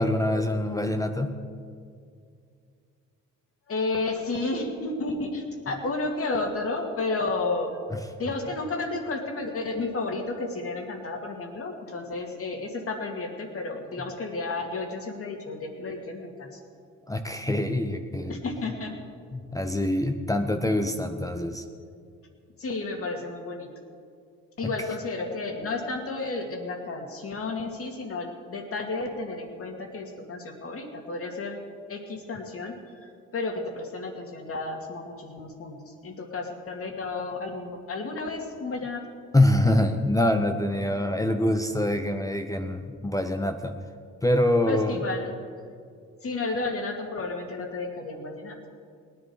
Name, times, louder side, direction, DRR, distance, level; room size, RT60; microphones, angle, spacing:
voice 1, 0.0-1.3 17.1-18.4 19.3-21.6 39.3-43.7 44.2-45.0, left 1 dB, 10° left, 6 dB, 0.7 m, -25 dB
voice 2, 3.7-7.8 8.2-16.6 18.3-18.9 22.6-23.7 24.6-31.6 31.9-39.1 44.7-45.4 46.2-48.6, left 3 dB, 50° left, 3 dB, 2.3 m, -32 dB
18.5 x 10.5 x 4.8 m, 2.2 s
cardioid pair, 90°, 30 cm